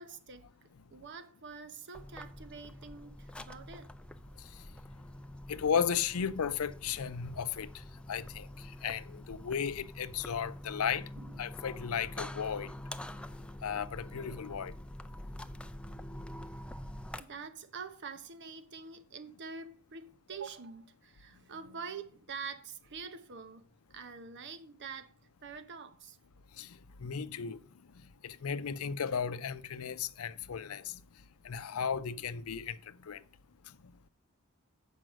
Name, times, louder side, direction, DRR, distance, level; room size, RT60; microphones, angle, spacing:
voice 1, 0.0-3.9 11.2-11.4 17.2-25.1 25.4-26.2, right 5 dB, 55° right, 0.8 m, -46 dB
sound 1, 1.9-17.2, left 1 dB, 5° left, 0.4 m, -46 dB
voice 2, 5.5-7.7 8.1-11.1 11.4-12.7 13.6-14.7 26.6-27.6 28.2-31.0 31.4-33.2, left 7 dB, 85° left, 0.5 m, -35 dB
7.7 x 5.5 x 6.2 m
head